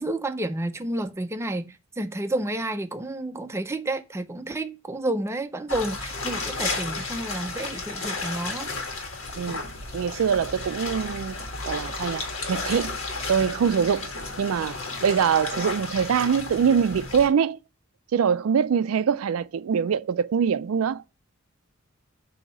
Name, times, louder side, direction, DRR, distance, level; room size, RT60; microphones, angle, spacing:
voice 1, 0.0-8.7, right 1 dB, 15° right, 0.5 m, -30 dB
sound 1, 5.7-17.3, left 3 dB, 70° left, 1.7 m, -33 dB
voice 2, 9.9-13.0 13.3-14.1 14.4-17.6 18.1-21.0, right 7 dB, 85° right, 0.4 m, -24 dB
7.9 x 2.8 x 4.9 m
head